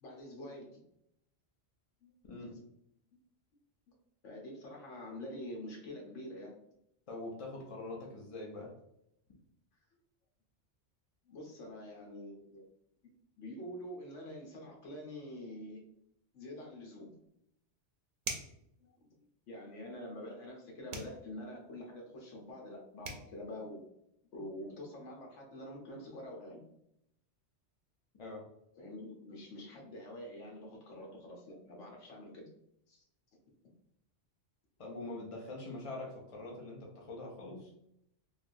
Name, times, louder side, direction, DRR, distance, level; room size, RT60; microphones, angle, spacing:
voice 1, 0.0-0.7 2.0-2.1 3.9-4.0 4.2-6.5 11.3-12.6 13.0-15.8 16.3-17.1 18.8-18.9 19.5-23.8 24.3-26.6 28.8-32.5 32.9-33.0, left 1 dB, 80° left, 0 dB, 1.1 m, -46 dB
voice 2, 2.2-2.6 7.1-8.7 28.2-28.5 34.8-37.7, left 2 dB, 40° left, -2 dB, 0.5 m, -44 dB
sound 1, 17.3-17.4 18.2-18.6 20.9-21.2 22.7-22.8 23.0-23.3, right 4 dB, 55° right, 0.6 m, -40 dB
3.3 x 2.2 x 2.5 m, 0.76 s
omnidirectional pair, 1.3 m